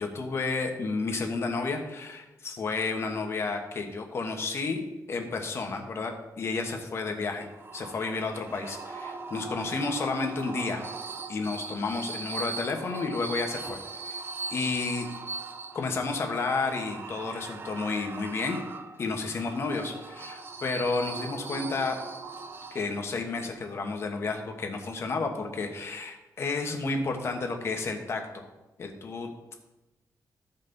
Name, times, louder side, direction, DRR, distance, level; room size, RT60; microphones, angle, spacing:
voice 1, 0.0-7.5 7.7-10.8 11.3-14.2 14.5-15.1 15.7-18.6 19.0-22.0 22.7-28.5 28.8-29.5, left 3 dB, 40° left, 3 dB, 1.3 m, -31 dB
sound 1, 7.4-23.1, right 4 dB, 35° right, 0.5 m, -40 dB
14.5 x 5.8 x 4.0 m, 1.0 s
wide cardioid pair, 175°, 7 cm